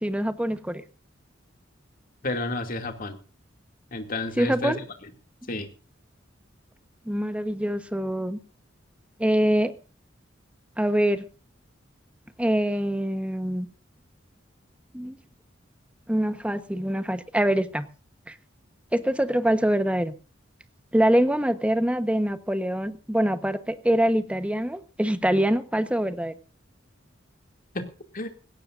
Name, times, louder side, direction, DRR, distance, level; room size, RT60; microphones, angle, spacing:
voice 1, 0.0-0.8 4.4-4.8 7.1-8.4 9.2-9.7 10.8-11.3 12.4-13.7 14.9-15.2 16.1-17.9 18.3-18.4 18.9-20.1 20.9-26.3, right 1 dB, 5° right, 11 dB, 1.1 m, -24 dB
voice 2, 2.2-3.2 3.9-4.8 5.5-5.7 27.7-27.9 28.1-28.3, left 2 dB, 45° left, 5 dB, 2.6 m, -30 dB
20.0 x 17.5 x 2.6 m, 0.35 s
head